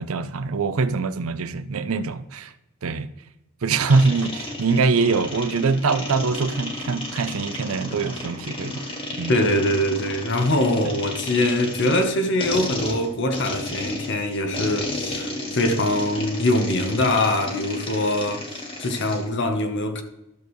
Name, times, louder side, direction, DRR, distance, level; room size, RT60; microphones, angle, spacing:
voice 1, 0.0-2.5 2.8-3.1 3.6-8.9 9.2-9.4, right 4 dB, 75° right, 0.6 m, -23 dB
sound 1, 3.9-19.3, left 1 dB, 25° left, 1.6 m, -33 dB
voice 2, 9.3-18.4 18.8-20.0, left 1 dB, 55° left, 1.0 m, -23 dB
12.5 x 6.8 x 3.1 m
head